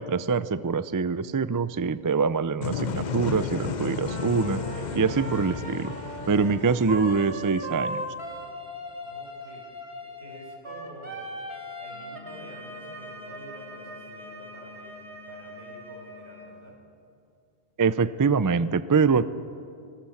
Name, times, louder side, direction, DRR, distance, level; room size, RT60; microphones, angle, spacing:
voice 1, 0.0-4.6 5.0-5.9 6.3-8.0 17.8-19.3, right 5 dB, 30° right, 15 dB, 0.3 m, -24 dB
sound 1, 2.6-8.5, left 5 dB, 45° left, 0.9 m, -34 dB
Wind instrument woodwind instrument, 4.0-16.5, right 1 dB, 70° right, 2.9 m, -39 dB
voice 2, 9.0-9.6 10.0-11.3 11.8-16.8, right 1 dB, 85° right, 0 dB, 5.7 m, -48 dB
Wind instrument woodwind instrument 2, 11.9-16.6, left 7 dB, 70° left, 7.8 m, -51 dB
25.5 x 20.0 x 7.2 m, 2.4 s
omnidirectional pair, 1.1 m